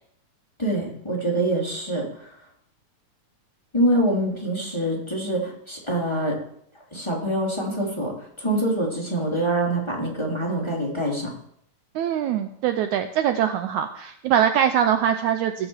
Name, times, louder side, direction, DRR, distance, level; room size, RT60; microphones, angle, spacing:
voice 1, 0.6-2.3 3.7-6.4 6.9-11.3, right 1 dB, 10° left, -2 dB, 3.2 m, -25 dB
voice 2, 12.0-15.7, right 9 dB, 75° right, 8 dB, 2.0 m, -23 dB
16.5 x 6.9 x 7.4 m, 0.69 s
omnidirectional pair, 3.8 m